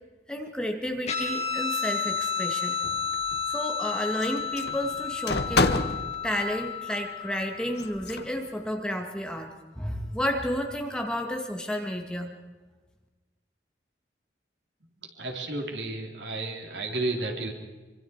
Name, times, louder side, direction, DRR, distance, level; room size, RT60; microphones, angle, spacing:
voice 1, 0.3-2.8 3.5-5.8 6.2-12.3, equal, 5° left, 3 dB, 2.0 m, -31 dB
Guitar, 1.1-8.0, left 6 dB, 40° left, 4.4 m, -31 dB
sound 1, 2.8-3.5 4.2-6.1 7.8-8.3, left 3 dB, 65° left, 1.3 m, -28 dB
voice 2, 15.1-17.5, right 2 dB, 80° right, 1 dB, 3.9 m, -32 dB
25.5 x 25.0 x 4.7 m, 1.3 s
head